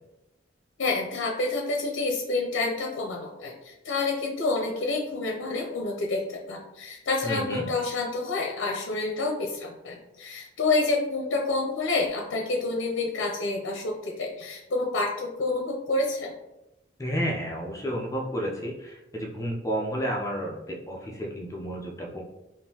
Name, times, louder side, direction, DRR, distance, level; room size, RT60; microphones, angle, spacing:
voice 1, 0.8-16.3, left 3 dB, 80° left, 0 dB, 0.5 m, -28 dB
voice 2, 7.2-7.7 17.0-22.2, equal, 15° left, -1 dB, 0.4 m, -31 dB
3.7 x 2.5 x 2.7 m, 0.93 s
head